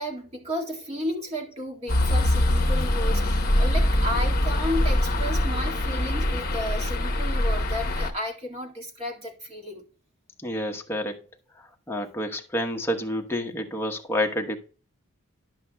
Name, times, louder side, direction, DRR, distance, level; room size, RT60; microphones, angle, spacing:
voice 1, 0.0-9.8, equal, 30° right, 2.0 m, -33 dB
sound 1, 1.9-8.1, left 1 dB, 45° left, 1.0 m, -23 dB
voice 2, 10.4-11.2 11.6-14.6, left 1 dB, 10° left, 1.0 m, -29 dB
11.0 x 7.7 x 2.2 m
head